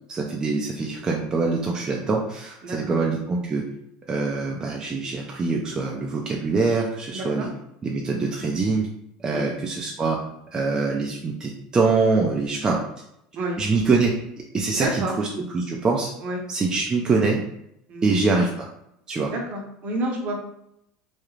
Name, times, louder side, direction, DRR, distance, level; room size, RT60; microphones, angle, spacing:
voice 1, 0.1-3.6 4.1-7.5 7.8-8.9 9.2-10.2 10.5-12.8 13.6-14.1 14.5-15.3 15.5-16.1 16.5-17.4 18.0-18.7 19.1-19.3, right 4 dB, 20° right, -1 dB, 0.3 m, -24 dB
voice 2, 2.6-3.0 7.1-7.5 9.3-9.5 13.3-13.6 14.7-15.2 16.2-16.4 17.9-18.2 19.2-20.4, right 1 dB, 50° right, 1 dB, 0.7 m, -29 dB
2.4 x 2.0 x 3.0 m, 0.78 s
supercardioid pair, 115°, 3 cm